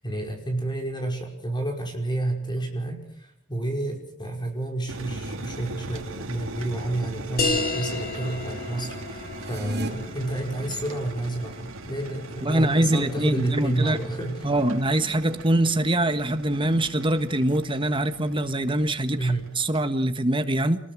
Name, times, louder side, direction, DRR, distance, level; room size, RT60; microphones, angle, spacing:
voice 1, 0.0-14.5 19.2-19.5, right 2 dB, 20° left, 2 dB, 5.6 m, -30 dB
sound 1, 4.9-19.8, right 2 dB, 75° right, 2.7 m, -40 dB
sound 2, 7.4-12.5, left 3 dB, 45° left, 5.1 m, -32 dB
sound 3, 9.3-9.9, right 1 dB, 50° right, 3.4 m, -31 dB
voice 2, 12.4-14.0 14.4-20.8, right 1 dB, 25° right, 9 dB, 1.6 m, -23 dB
28.5 x 21.0 x 6.3 m, 0.68 s
head